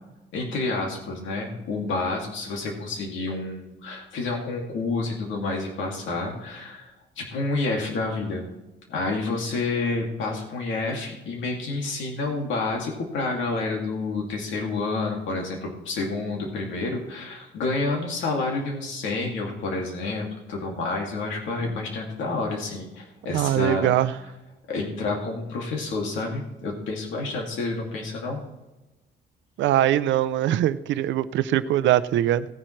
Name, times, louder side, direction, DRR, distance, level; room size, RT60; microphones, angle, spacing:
voice 1, 0.3-8.4 8.9-23.9 24.7-28.4, left 3 dB, 85° left, 0 dB, 2.4 m, -29 dB
voice 2, 23.3-24.1 29.6-32.5, right 12 dB, 80° right, 14 dB, 0.6 m, -22 dB
17.0 x 10.0 x 3.2 m, 1.1 s
cardioid pair, 165°, 19 cm